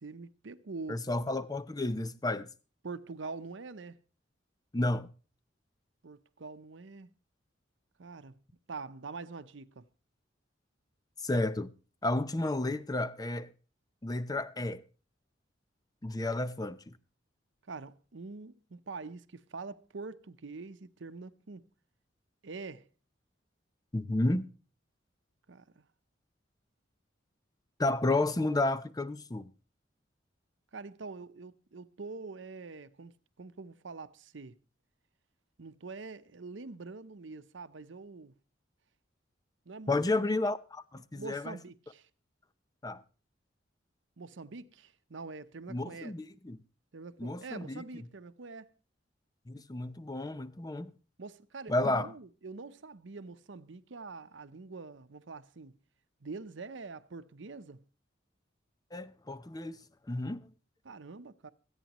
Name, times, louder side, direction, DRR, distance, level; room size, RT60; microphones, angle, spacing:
voice 1, 0.0-1.0 2.8-4.0 6.0-7.1 8.0-8.4 8.7-9.9 17.7-21.6 22.4-22.9 25.5-25.8 30.7-34.6 35.6-38.3 39.7-40.0 41.0-42.1 44.2-46.1 46.9-48.7 51.2-55.8 56.2-57.8 60.8-61.5, right 4 dB, 75° right, 0.7 m, -45 dB
voice 2, 0.9-2.5 4.7-5.1 11.2-11.7 12.0-13.5 14.0-14.8 16.0-16.9 23.9-24.5 27.8-29.5 39.9-41.6 42.8-43.0 45.7-46.6 47.2-47.8 49.5-50.9 51.7-52.1 58.9-59.8 60.1-60.5, left 2 dB, 20° left, 0.6 m, -31 dB
24.5 x 9.0 x 3.0 m
head